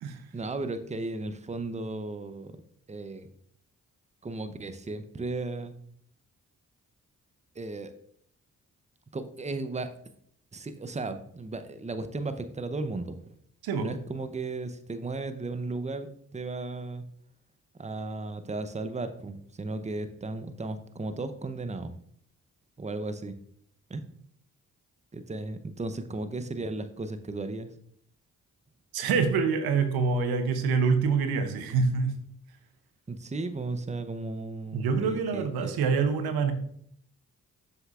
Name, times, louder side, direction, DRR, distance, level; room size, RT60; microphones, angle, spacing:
voice 1, 0.3-2.5 2.9-3.3 4.2-5.7 7.5-7.9 9.1-9.9 10.5-13.3 13.8-17.0 17.8-21.9 22.8-23.4 23.9-24.0 25.1-27.7 33.1-35.8, right 3 dB, 20° right, 10 dB, 0.7 m, -35 dB
voice 2, 28.9-32.2 34.7-36.5, right 5 dB, 90° right, 8 dB, 0.7 m, -26 dB
7.0 x 6.6 x 2.4 m, 0.65 s
supercardioid pair, 45°, 36 cm